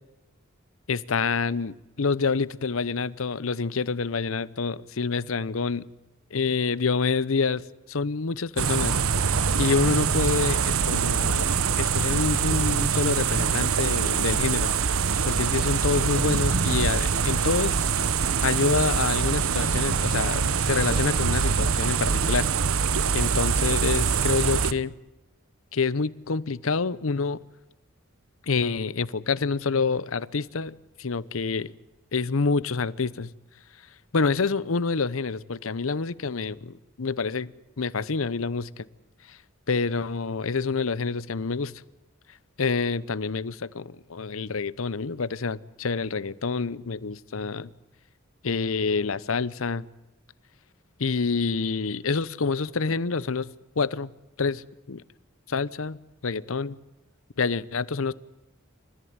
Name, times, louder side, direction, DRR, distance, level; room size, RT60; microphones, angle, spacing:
voice 1, 0.9-5.9 6.3-9.0 9.3-14.9 15.3-17.8 18.4-22.5 23.1-24.9 25.7-27.4 28.5-31.7 32.1-33.3 34.1-38.8 39.3-39.4 39.7-41.8 42.6-47.7 48.4-49.9 51.0-54.1 54.4-55.0 55.5-56.8 57.4-58.1, left 4 dB, 75° left, 0.8 m, -27 dB
sound 1, 8.6-24.7, right 6 dB, 85° right, 0.9 m, -24 dB
28.5 x 14.5 x 9.6 m
head